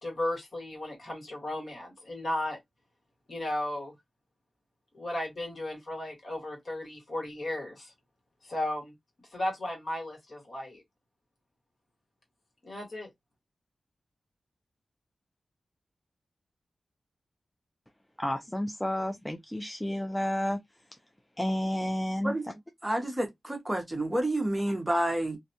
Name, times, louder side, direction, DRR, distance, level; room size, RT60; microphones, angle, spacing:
voice 1, 0.0-2.6 3.3-4.0 4.9-7.9 8.4-8.9 9.3-10.8 12.6-13.1, left 1 dB, 55° left, 1.5 m, -35 dB
voice 2, 18.2-20.6 21.4-22.3, left 1 dB, 10° left, 0.3 m, -31 dB
voice 3, 22.8-25.4, right 1 dB, 15° right, 0.7 m, -29 dB
2.5 x 2.2 x 2.7 m
wide cardioid pair, 85°, 0 cm